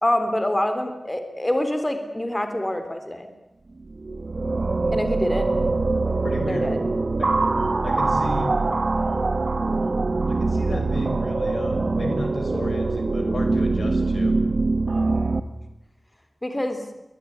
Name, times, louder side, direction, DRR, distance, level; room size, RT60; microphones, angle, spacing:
voice 1, 0.0-3.3 4.9-5.5 6.5-6.8 15.0-15.1 16.4-16.8, left 1 dB, 20° left, 7 dB, 3.7 m, -25 dB
sound 1, 3.8-15.4, right 3 dB, 60° right, 1.3 m, -23 dB
voice 2, 6.2-6.6 7.2-7.4 7.8-8.5 10.3-14.3, left 2 dB, 80° left, 5 dB, 5.6 m, -33 dB
23.0 x 20.0 x 9.6 m, 0.95 s
wide cardioid pair, 65°, 0 cm